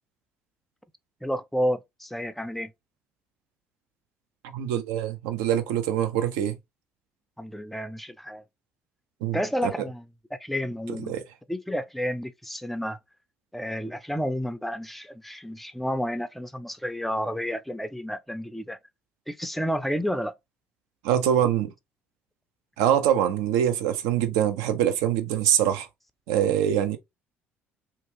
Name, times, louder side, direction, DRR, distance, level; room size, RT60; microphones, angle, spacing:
voice 1, 1.2-2.7 7.4-8.4 9.3-10.1 10.3-11.2 11.5-13.0 13.5-18.8 19.3-20.3, equal, ahead, 0.4 m, -30 dB
voice 2, 4.5-6.6 9.2-9.7 11.1-11.2 21.0-21.7 22.8-25.9 26.3-27.0, right 10 dB, 70° right, 0.5 m, -24 dB
2.8 x 2.4 x 2.9 m
figure-of-eight pair, 55°, 7 cm